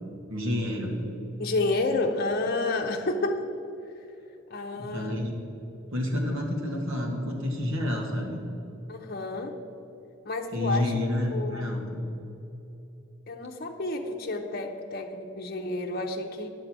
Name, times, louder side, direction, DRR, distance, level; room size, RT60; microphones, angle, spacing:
voice 1, 0.3-1.1 4.7-5.4 5.9-8.4 10.5-12.0, left 1 dB, 75° right, 0 dB, 1.9 m, -29 dB
voice 2, 1.4-3.4 4.5-5.2 8.9-9.5 10.2-11.7 13.3-16.5, left 2 dB, 45° left, 2 dB, 0.8 m, -30 dB
10.5 x 6.7 x 6.1 m, 3.0 s
head